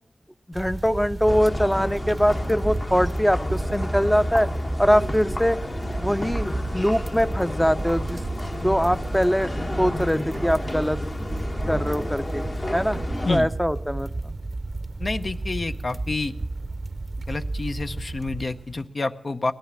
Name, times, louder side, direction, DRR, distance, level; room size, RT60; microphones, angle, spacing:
voice 1, 0.5-4.5 4.8-5.6 6.0-6.5 6.7-8.2 8.6-9.5 9.8-11.0 11.7-12.4 12.7-13.0 13.3-14.3, equal, 5° left, 12 dB, 0.5 m, -22 dB
sound 1, 0.5-18.9, right 2 dB, 45° right, 0.5 m, -33 dB
sound 2, 1.3-13.4, left 1 dB, 40° left, 1.3 m, -31 dB
voice 2, 15.0-16.3 17.3-19.5, left 3 dB, 60° left, 9 dB, 0.7 m, -28 dB
18.0 x 10.5 x 7.5 m, 0.70 s
wide cardioid pair, 60°, 0 cm